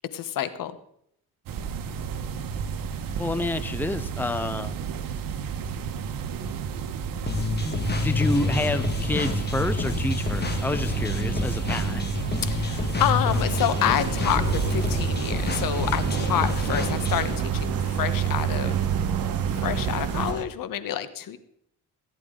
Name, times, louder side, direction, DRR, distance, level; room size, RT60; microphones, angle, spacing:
voice 1, 0.1-0.7 12.4-18.8 19.5-21.4, left 10 dB, 70° left, 12 dB, 1.3 m, -28 dB
sound 1, 1.5-20.3, right 7 dB, 75° right, 1.3 m, -29 dB
voice 2, 3.2-4.7 7.0-7.1 7.6-12.0, left 2 dB, 5° left, 12 dB, 0.7 m, -29 dB
sound 2, 7.3-17.4, left 3 dB, 30° left, 2.0 m, -29 dB
sound 3, 13.3-20.4, right 5 dB, 45° right, 1.8 m, -37 dB
18.0 x 10.5 x 3.8 m, 0.72 s
cardioid pair, 105°, 34 cm